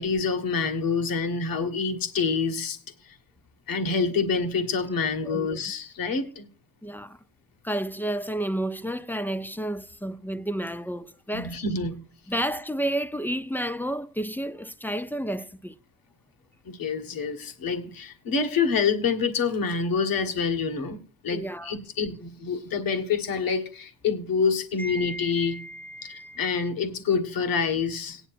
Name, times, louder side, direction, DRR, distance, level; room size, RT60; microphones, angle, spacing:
voice 1, 0.0-2.8 3.0-3.2 3.7-6.4 11.3-12.0 16.6-21.0 21.2-25.6 26.0-28.2, left 5 dB, 75° left, 1.6 m, -27 dB
voice 2, 5.2-5.6 6.8-7.2 7.6-11.6 12.3-15.7 21.3-21.7 24.8-26.4, right 1 dB, 5° left, 0.5 m, -31 dB
18.5 x 9.9 x 2.5 m
wide cardioid pair, 135°, 34 cm